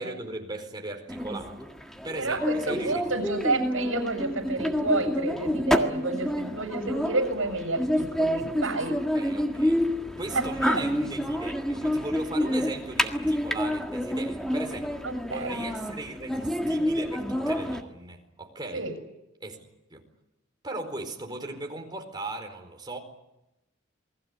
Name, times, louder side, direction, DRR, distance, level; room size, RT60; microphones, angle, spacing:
voice 1, 0.0-1.7 2.0-3.0 9.1-9.8 10.2-15.0 15.3-18.9 19.4-20.0 20.6-23.0, right 2 dB, 20° right, 4.5 m, -38 dB
sound 1, 1.1-17.8, equal, ahead, 1.7 m, -28 dB
voice 2, 2.1-9.0 10.3-10.4 10.7-10.8 15.0-15.6 18.7-18.9, right 2 dB, 70° right, 6.7 m, -30 dB
28.5 x 21.0 x 8.5 m
head